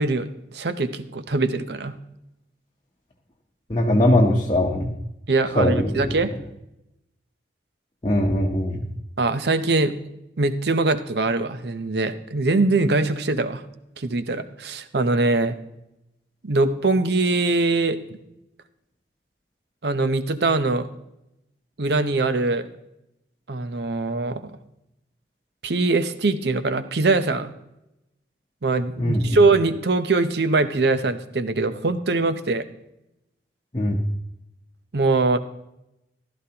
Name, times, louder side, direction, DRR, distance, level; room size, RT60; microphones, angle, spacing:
voice 1, 0.0-2.0 5.3-6.3 9.2-9.9 10.4-13.6 14.0-15.6 16.4-18.0 19.8-20.9 21.8-22.7 23.5-24.5 25.6-27.5 28.6-32.6 34.9-35.4, right 3 dB, 65° right, 11 dB, 0.8 m, -22 dB
voice 2, 3.7-4.9 5.5-6.1 8.0-8.9 29.0-29.4 33.7-34.0, left 1 dB, 25° left, -2 dB, 0.9 m, -21 dB
15.0 x 12.5 x 2.9 m, 0.86 s
head